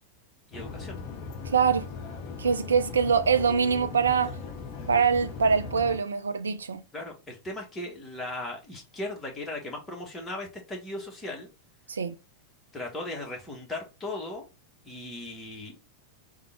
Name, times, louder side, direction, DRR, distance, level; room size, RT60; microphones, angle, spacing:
sound 1, 0.5-6.0, left 4 dB, 40° left, 0.7 m, -39 dB
voice 1, 0.5-1.0 6.9-11.5 12.7-14.5 14.8-15.8, left 2 dB, 15° left, 1.2 m, -37 dB
voice 2, 1.5-1.9 2.4-4.4 4.9-6.8 11.9-12.1, right 6 dB, 70° right, 0.3 m, -24 dB
3.6 x 2.3 x 3.2 m
figure-of-eight pair, 90°, 0 cm